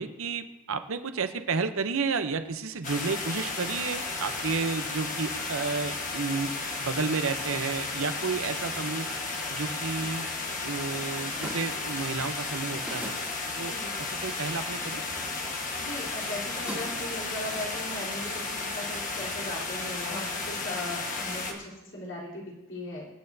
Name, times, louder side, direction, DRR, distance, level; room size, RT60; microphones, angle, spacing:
voice 1, 0.0-6.5 6.8-9.1 9.5-10.3 10.6-13.1 13.6-15.0, right 4 dB, 70° right, 9 dB, 0.7 m, -31 dB
sound 1, 2.8-21.5, left 3 dB, 35° left, 1.4 m, -33 dB
sound 2, 9.8-20.7, equal, 5° right, 2.6 m, -47 dB
voice 2, 15.8-23.1, left 1 dB, 55° left, -5 dB, 3.6 m, -38 dB
25.5 x 8.8 x 2.7 m, 1.0 s
head